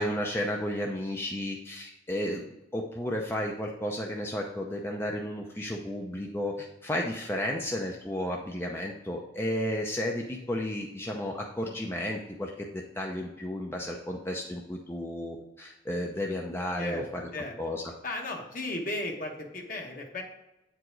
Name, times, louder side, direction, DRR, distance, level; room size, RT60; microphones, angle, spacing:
voice 1, 0.0-2.4 2.7-17.2 17.6-17.8, left 1 dB, 15° left, 0 dB, 0.5 m, -33 dB
voice 2, 18.0-20.2, left 2 dB, 45° left, 2 dB, 1.2 m, -35 dB
8.7 x 4.8 x 3.9 m, 0.96 s
head